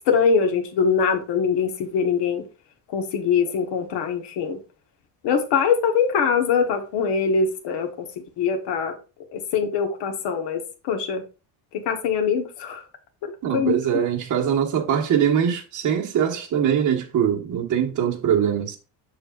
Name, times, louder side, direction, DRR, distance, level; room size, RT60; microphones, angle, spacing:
voice 1, 0.1-2.4 2.9-4.6 5.2-8.1 8.4-9.0 9.3-10.6 10.9-11.2 11.9-12.8 13.2-14.0, left 6 dB, 80° left, 1.3 m, -23 dB
voice 2, 13.4-18.8, right 9 dB, 45° right, 1.5 m, -22 dB
6.7 x 6.3 x 2.5 m
cardioid pair, 150°, 41 cm